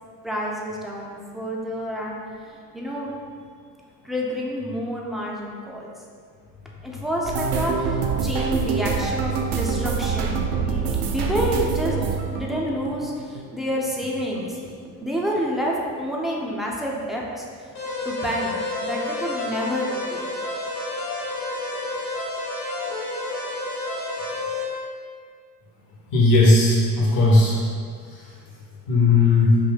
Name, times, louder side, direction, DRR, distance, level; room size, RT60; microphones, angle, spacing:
voice 1, 0.2-2.2 2.7-3.1 4.0-5.9 6.8-12.0 12.3-14.6 15.0-17.4 18.0-20.3, equal, ahead, -4 dB, 0.4 m, -28 dB
sound 1, 7.3-14.1 14.4-15.4 15.7-16.0 16.4-16.6, right 5 dB, 60° right, 0.5 m, -26 dB
sound 2, 17.8-24.6, left 2 dB, 90° left, 1.0 m, -30 dB
voice 2, 26.1-27.6 28.1-28.2 28.9-29.6, left 2 dB, 40° left, -5 dB, 0.7 m, -16 dB
2.6 x 2.3 x 3.2 m, 2.1 s
hypercardioid pair, 50°, 48 cm